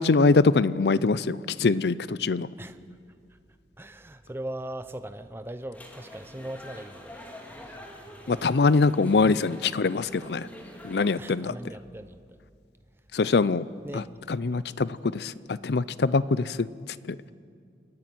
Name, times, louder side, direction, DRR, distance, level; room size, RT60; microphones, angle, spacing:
voice 1, 0.0-2.5 8.3-10.5 10.8-11.5 13.1-13.6 13.9-14.0 14.3-16.7 17.1-17.3, left 4 dB, 65° left, 18 dB, 0.5 m, -23 dB
voice 2, 3.8-7.7 11.2-12.4 13.8-14.1 14.5-14.6, right 1 dB, 15° right, 10 dB, 0.6 m, -39 dB
sound 1, 5.7-11.2, equal, 10° left, 2.3 m, -46 dB
29.5 x 10.5 x 9.1 m, 2.3 s
head